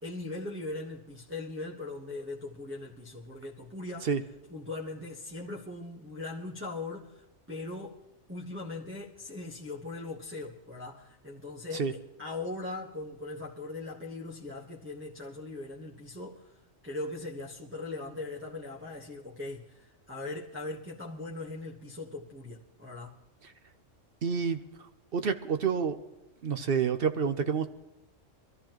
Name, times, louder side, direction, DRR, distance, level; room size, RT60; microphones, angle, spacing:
voice 1, 0.0-4.1 4.5-8.0 8.3-16.5 16.8-23.2, left 2 dB, 10° right, 1.1 m, -40 dB
voice 2, 24.2-24.6 25.1-26.0 26.4-27.7, right 6 dB, 55° right, 0.8 m, -28 dB
23.5 x 13.5 x 3.0 m
omnidirectional pair, 1.3 m